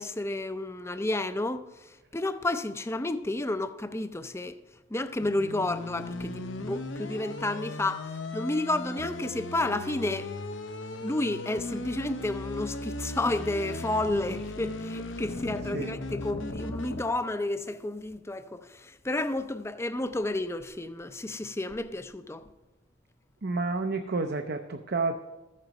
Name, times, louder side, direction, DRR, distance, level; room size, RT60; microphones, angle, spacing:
voice 1, 0.0-4.6 4.9-10.3 11.0-22.5, left 2 dB, 15° left, 0.5 m, -31 dB
sound 1, 5.2-17.0, left 2 dB, 70° left, 0.8 m, -37 dB
voice 2, 23.4-25.2, right 3 dB, 55° right, 0.6 m, -30 dB
14.0 x 7.5 x 5.3 m
head